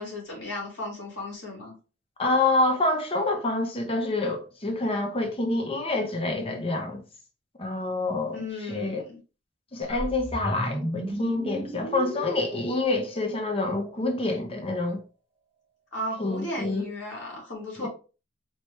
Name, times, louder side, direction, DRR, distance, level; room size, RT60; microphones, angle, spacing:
voice 1, 0.0-1.7 8.3-9.2 15.9-17.9, left 1 dB, 65° left, 2.1 m, -35 dB
voice 2, 2.2-7.0 7.6-9.0 9.7-15.0 16.2-16.9 17.8-17.9, left 2 dB, 30° left, 0.8 m, -27 dB
sound 1, 9.9-14.1, right 1 dB, 10° right, 0.8 m, -35 dB
4.5 x 2.9 x 3.2 m
head